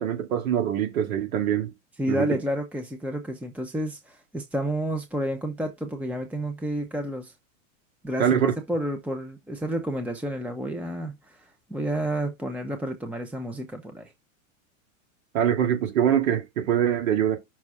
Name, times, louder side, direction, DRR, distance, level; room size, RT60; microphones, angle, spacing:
voice 1, 0.0-1.7 2.1-2.4 8.2-8.5 15.3-17.4, right 9 dB, 80° right, 2.5 m, -23 dB
voice 2, 2.0-7.3 8.0-14.1, right 1 dB, 5° right, 0.9 m, -30 dB
6.1 x 4.0 x 6.2 m
supercardioid pair, 120°, 41 cm